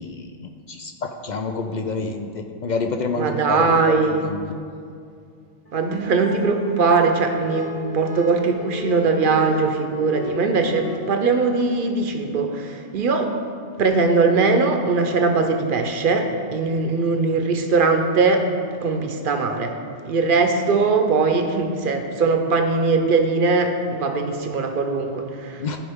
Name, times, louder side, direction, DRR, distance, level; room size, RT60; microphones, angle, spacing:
voice 1, 0.0-4.5 25.6-25.8, left 3 dB, 60° left, 4 dB, 0.5 m, -28 dB
voice 2, 3.2-4.3 5.7-13.3 13.8-18.5 18.8-19.8 20.0-25.7, right 4 dB, 55° right, 5 dB, 0.8 m, -20 dB
sound 1, 5.7-11.0, left 1 dB, 35° left, 0.9 m, -36 dB
13.0 x 4.9 x 3.5 m, 2.3 s
omnidirectional pair, 1.1 m